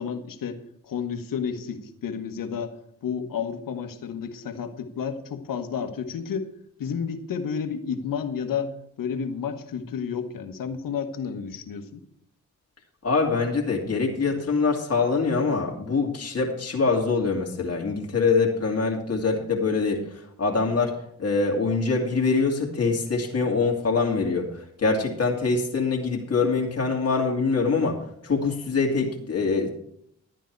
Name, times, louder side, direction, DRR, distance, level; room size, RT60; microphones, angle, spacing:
voice 1, 0.0-2.7 3.0-6.5 6.8-8.7 9.0-12.0, left 6 dB, 80° left, 7 dB, 1.4 m, -31 dB
voice 2, 13.0-20.0 20.4-20.9 21.2-28.0 28.2-29.7, left 4 dB, 45° left, 0 dB, 2.4 m, -24 dB
12.0 x 9.2 x 4.6 m, 0.70 s
cardioid pair, 55°, 33 cm